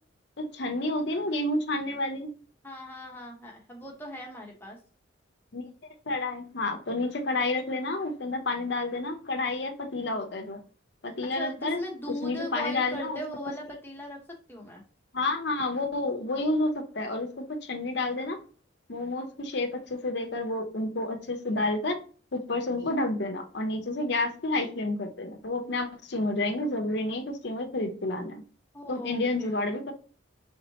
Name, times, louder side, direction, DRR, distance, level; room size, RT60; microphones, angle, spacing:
voice 1, 0.4-2.3 5.5-5.6 6.1-10.6 11.0-11.8 12.2-13.2 15.1-18.4 18.9-22.0 22.3-28.4 28.9-29.9, left 2 dB, 55° left, 0.7 m, -30 dB
voice 2, 2.6-4.8 11.2-14.2 14.5-14.8 28.7-29.6, equal, 10° left, 0.9 m, -39 dB
4.3 x 3.5 x 2.8 m
head